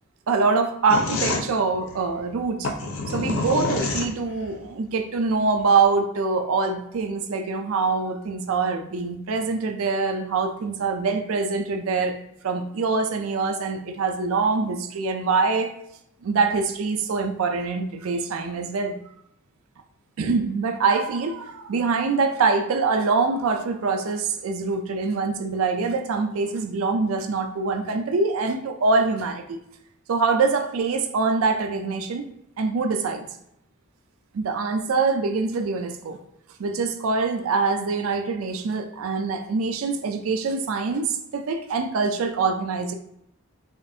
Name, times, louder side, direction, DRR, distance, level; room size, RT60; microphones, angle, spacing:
voice 1, 0.3-2.7 3.1-12.2 12.4-15.7 16.2-18.9 20.2-29.6 30.1-32.3 32.6-33.3 34.3-36.2 36.6-42.9, right 4 dB, 70° right, 0.4 m, -24 dB
sound 1, 0.9-4.6, left 3 dB, 65° left, 0.6 m, -28 dB
4.9 x 2.5 x 2.7 m
head